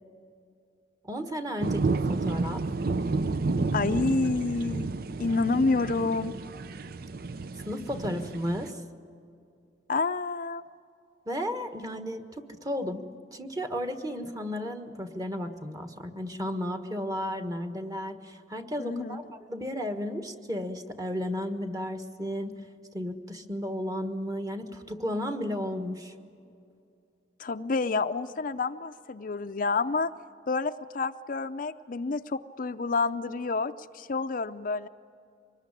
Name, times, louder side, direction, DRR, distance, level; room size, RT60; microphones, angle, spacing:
voice 1, 1.0-2.6 7.7-8.8 11.3-22.6 22.9-26.1, equal, 20° right, 7 dB, 1.4 m, -33 dB
sound 1, 1.6-8.7, right 3 dB, 55° right, 0.6 m, -31 dB
voice 2, 3.7-4.9 5.2-6.3 9.9-10.6 18.8-19.2 27.4-30.1 30.5-34.9, left 3 dB, 50° left, 9 dB, 0.6 m, -28 dB
24.5 x 20.5 x 9.8 m, 2.5 s
head